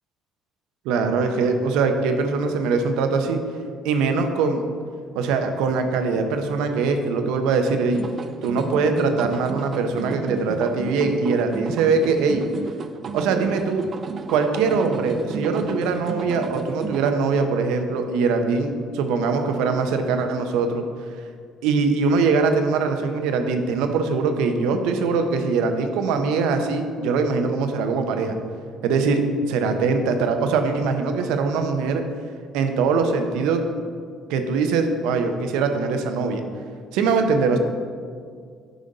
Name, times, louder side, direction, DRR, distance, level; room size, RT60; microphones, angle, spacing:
voice 1, 0.8-3.4 3.8-4.6 5.1-8.0 8.4-12.4 13.1-13.8 14.3-20.8 21.6-28.4 28.8-29.2 29.5-32.0 32.5-33.6 34.3-36.4 36.9-37.6, right 4 dB, 85° right, 6 dB, 0.7 m, -22 dB
sound 1, 7.9-17.1, right 5 dB, 40° right, 0.4 m, -33 dB
9.1 x 5.1 x 4.0 m, 2.1 s
cardioid pair, 100°, 0 cm